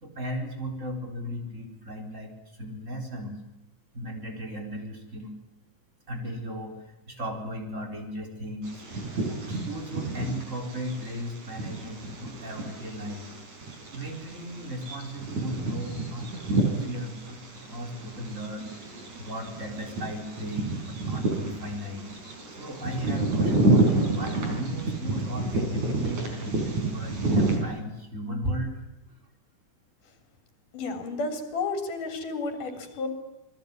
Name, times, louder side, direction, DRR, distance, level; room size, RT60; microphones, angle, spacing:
voice 1, 0.0-3.4 3.9-5.3 6.1-6.8 7.1-8.8 9.2-13.3 13.8-22.1 22.5-26.5 26.8-28.8, equal, 20° right, 2 dB, 4.5 m, -36 dB
Bird vocalization bird call bird song, 8.6-27.6, right 2 dB, 60° right, 6.4 m, -29 dB
voice 2, 30.7-33.1, left 3 dB, 75° left, 5 dB, 5.2 m, -32 dB
27.5 x 20.5 x 9.5 m, 0.95 s
omnidirectional pair, 3.7 m